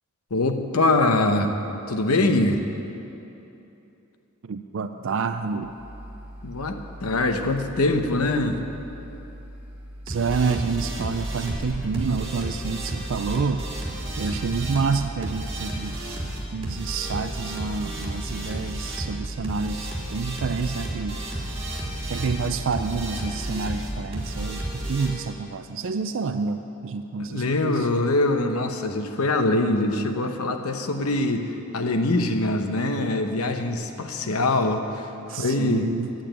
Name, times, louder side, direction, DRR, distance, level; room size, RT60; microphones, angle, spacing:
voice 1, 0.3-1.5 1.9-2.6 6.4-8.6 27.2-35.8, left 2 dB, 90° left, 6 dB, 0.9 m, -23 dB
voice 2, 4.4-5.8 10.1-13.7 14.2-16.2 16.5-21.6 22.1-27.9 35.3-36.1, right 5 dB, 60° right, 8 dB, 0.4 m, -28 dB
sound 1, 5.6-12.0, equal, 5° right, 1.9 m, -41 dB
sound 2, 10.1-25.1, right 1 dB, 25° right, 2.5 m, -32 dB
10.0 x 8.8 x 9.0 m, 2.9 s
head